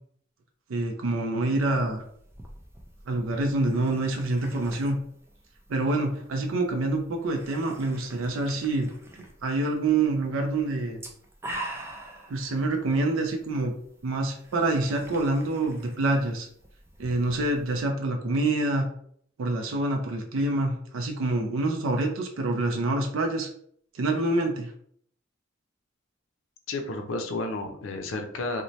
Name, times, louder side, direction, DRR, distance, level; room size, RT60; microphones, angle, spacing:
voice 1, 0.7-2.0 3.1-5.0 5.7-8.9 9.4-11.0 12.3-13.7 14.0-16.5 17.0-18.9 19.4-23.5 23.9-24.7, right 2 dB, 90° right, 4 dB, 0.4 m, -26 dB
sound 1, 1.5-17.8, right 1 dB, 15° right, 0.4 m, -46 dB
voice 2, 26.7-28.6, left 2 dB, 85° left, 4 dB, 0.5 m, -31 dB
2.7 x 2.1 x 3.0 m, 0.64 s
head